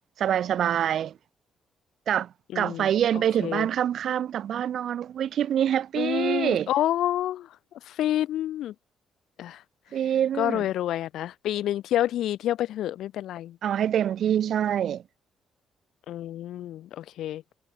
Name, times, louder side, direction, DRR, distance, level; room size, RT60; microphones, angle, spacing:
voice 1, 0.2-1.1 2.1-2.3 2.5-6.7 9.9-10.7 13.6-15.0, right 10 dB, 65° right, 1.0 m, -25 dB
voice 2, 2.5-2.9 3.4-3.7 6.0-7.5 7.9-8.7 9.4-9.6 10.4-13.6 16.1-17.4, left 12 dB, 80° left, 2.3 m, -28 dB
cardioid pair, 90°, 0 cm